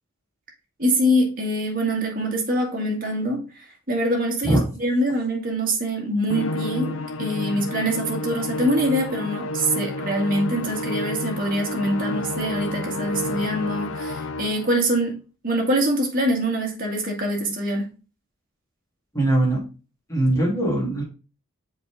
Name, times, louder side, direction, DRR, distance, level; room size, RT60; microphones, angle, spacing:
voice 1, 0.8-15.2 15.4-17.9, equal, 40° right, 2.1 m, -24 dB
Musical instrument, 6.3-14.8, left 1 dB, 75° left, 0.6 m, -30 dB
voice 2, 19.1-19.6 20.1-21.0, right 1 dB, 15° left, 3.3 m, -21 dB
6.7 x 4.9 x 3.7 m
head